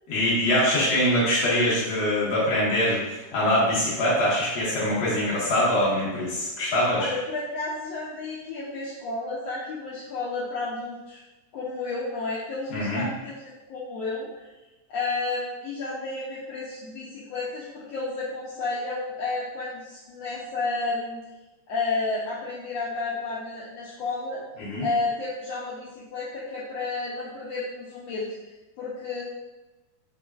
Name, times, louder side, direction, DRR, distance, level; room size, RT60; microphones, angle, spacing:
voice 1, 0.1-7.1 12.7-13.0 24.6-24.9, left 1 dB, 45° left, -7 dB, 1.5 m, -23 dB
voice 2, 7.0-11.2 11.5-14.5 14.9-21.2 21.7-24.4 24.8-28.2 28.8-29.2, left 3 dB, 75° left, -7 dB, 1.6 m, -31 dB
4.6 x 3.7 x 2.4 m, 1.1 s
omnidirectional pair, 3.3 m